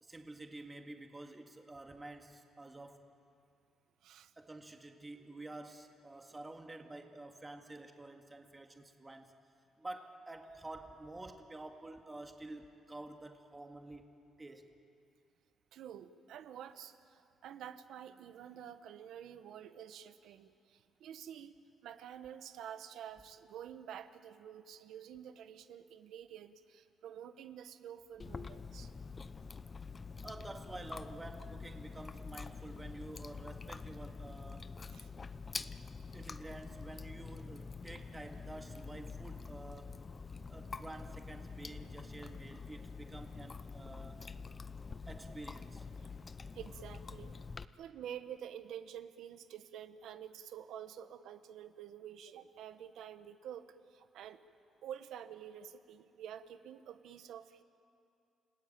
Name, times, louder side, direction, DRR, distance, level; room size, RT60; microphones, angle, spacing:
voice 1, 0.0-3.1 4.4-9.3 9.8-14.7 30.2-34.7 36.1-40.0 40.5-44.2 45.1-45.9, right 2 dB, 20° right, 4 dB, 2.1 m, -49 dB
voice 2, 4.0-4.3 15.7-28.9 34.9-35.1 46.0-46.1 46.5-47.4 47.8-54.4 54.8-57.6, right 9 dB, 80° right, 10 dB, 1.1 m, -49 dB
Chewing mastication, 28.2-47.6, left 4 dB, 30° left, 0.8 m, -46 dB
29.5 x 18.0 x 9.0 m, 2.6 s
cardioid pair, 90°, 0 cm